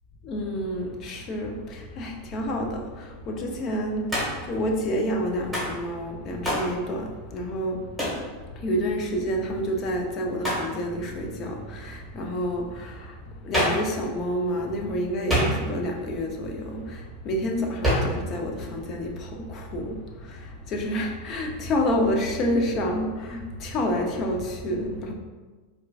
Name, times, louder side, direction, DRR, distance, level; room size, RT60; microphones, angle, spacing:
voice 1, 0.2-25.1, equal, 40° left, 2 dB, 0.6 m, -29 dB
Hands, 4.1-4.5 5.5-5.8 6.4-6.7 8.0-8.2 10.4-10.7 13.5-13.9 15.3-15.9 17.8-18.2, equal, ahead, 1.4 m, -25 dB
4.4 x 2.4 x 2.3 m, 1.3 s
hypercardioid pair, 120°, 0 cm